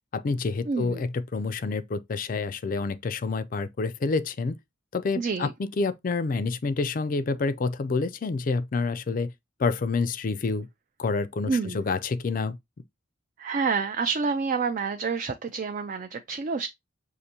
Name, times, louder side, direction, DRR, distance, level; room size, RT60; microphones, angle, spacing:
voice 1, 0.1-4.6 4.9-9.3 9.6-10.7 11.0-12.6, left 4 dB, 40° left, 0.4 m, -28 dB
voice 2, 0.7-1.0 5.1-5.5 11.5-11.8 13.4-16.7, right 5 dB, 40° right, 0.3 m, -28 dB
6.5 x 2.6 x 2.8 m
head